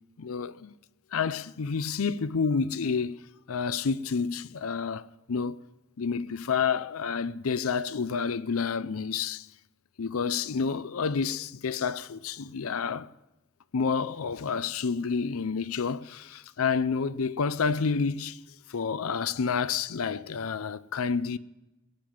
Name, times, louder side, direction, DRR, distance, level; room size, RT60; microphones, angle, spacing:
voice 1, 0.2-0.7 1.1-3.2 3.5-5.6 6.0-9.5 10.0-13.1 13.7-18.4 18.7-21.4, left 5 dB, 90° left, 0.6 m, -29 dB
18.0 x 9.4 x 7.1 m
head